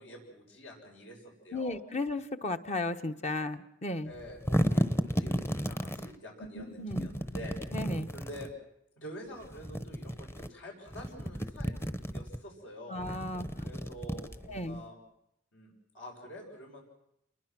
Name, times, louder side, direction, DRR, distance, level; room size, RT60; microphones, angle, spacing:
voice 1, 0.0-1.8 4.0-7.6 8.1-8.5 9.0-11.8 12.1-13.1 13.6-15.0 15.5-16.8, equal, 75° left, 0 dB, 6.8 m, -47 dB
voice 2, 1.5-4.1 6.5-7.1 7.7-8.1 12.9-13.5 14.5-14.8, left 2 dB, 35° left, 7 dB, 1.1 m, -35 dB
sound 1, 4.1-6.1 6.9-8.5 9.4-10.5 10.9-12.4 13.0-14.8, equal, 15° left, 1.0 m, -33 dB
28.5 x 22.0 x 6.1 m, 0.78 s
head